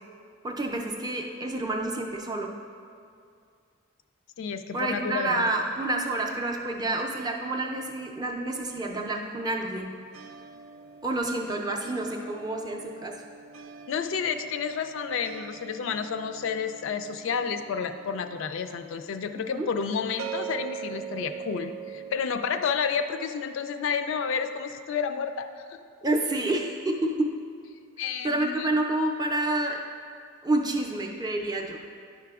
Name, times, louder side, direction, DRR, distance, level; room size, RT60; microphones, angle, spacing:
voice 1, 0.4-2.5 4.7-9.9 11.0-13.1 19.5-19.7 26.0-27.3 28.2-29.8 30.4-31.8, right 2 dB, 20° right, 1 dB, 0.4 m, -28 dB
voice 2, 4.4-5.5 13.9-25.8 28.0-28.7, left 6 dB, 65° left, 8 dB, 0.3 m, -30 dB
sound 1, 4.6-7.3 7.5-22.3, right 7 dB, 80° right, 0.4 m, -43 dB
10.0 x 5.8 x 2.3 m, 2.3 s
head